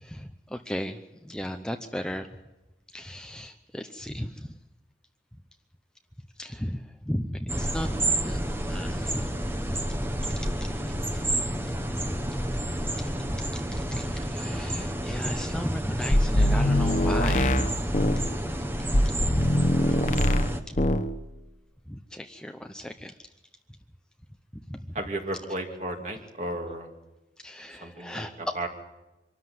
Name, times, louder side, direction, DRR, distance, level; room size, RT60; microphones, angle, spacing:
voice 1, 0.0-2.3 2.9-4.5 6.4-8.4 8.7-9.3 9.7-9.8 10.4-10.7 12.1-12.2 13.0-13.1 13.5-17.7 20.7-20.8 21.9-23.1 24.7-24.8 27.4-28.3, equal, 5° left, 6 dB, 0.7 m, -35 dB
sound 1, 7.5-20.6, right 1 dB, 10° right, 1.1 m, -30 dB
sound 2, 16.1-18.3 18.9-20.5 20.8-21.1, left 1 dB, 40° left, 1.1 m, -23 dB
voice 2, 24.9-26.9 27.8-28.7, right 1 dB, 40° right, 3 dB, 2.7 m, -34 dB
25.0 x 13.5 x 9.6 m, 1.0 s
head